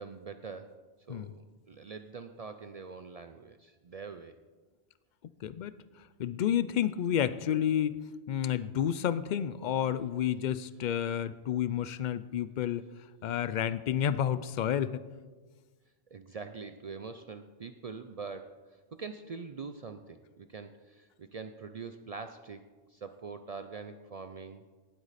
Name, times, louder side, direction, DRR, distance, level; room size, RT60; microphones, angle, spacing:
voice 1, 0.0-4.4 16.1-24.6, right 5 dB, 55° right, 8 dB, 0.4 m, -44 dB
voice 2, 5.4-5.8 6.2-8.0 8.3-12.9 13.2-15.0, left 10 dB, 60° left, 15 dB, 0.5 m, -30 dB
18.5 x 8.1 x 4.1 m, 1.4 s
omnidirectional pair, 1.1 m